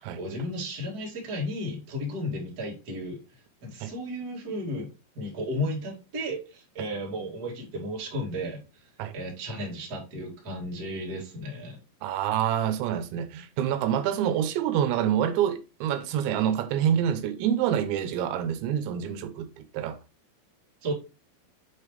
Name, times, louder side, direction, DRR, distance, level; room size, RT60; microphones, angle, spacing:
voice 1, 0.2-4.9 5.1-8.9 9.1-11.8 20.8-20.9, equal, 30° right, 1.9 m, -34 dB
voice 2, 12.0-20.0, right 9 dB, 85° right, 3.0 m, -27 dB
7.7 x 4.9 x 3.3 m
omnidirectional pair, 5.3 m